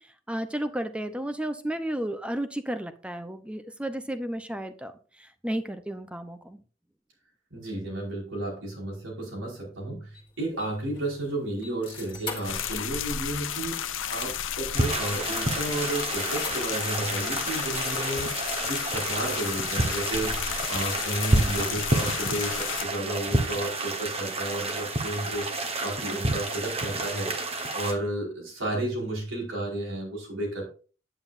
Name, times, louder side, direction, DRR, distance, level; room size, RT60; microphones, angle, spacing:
voice 1, 0.0-6.6, right 1 dB, 5° right, 10 dB, 0.7 m, -33 dB
voice 2, 7.5-18.3 18.7-25.5 25.8-30.7, right 1 dB, 85° right, -2 dB, 5.1 m, -32 dB
sound 1, 10.1-14.9 15.3-18.3, left 5 dB, 25° left, 2.1 m, -43 dB
sound 2, 12.4-22.9, left 9 dB, 75° left, 0.8 m, -32 dB
sound 3, 14.7-27.9, right 2 dB, 30° right, 1.3 m, -30 dB
9.5 x 8.8 x 2.6 m, 0.38 s
head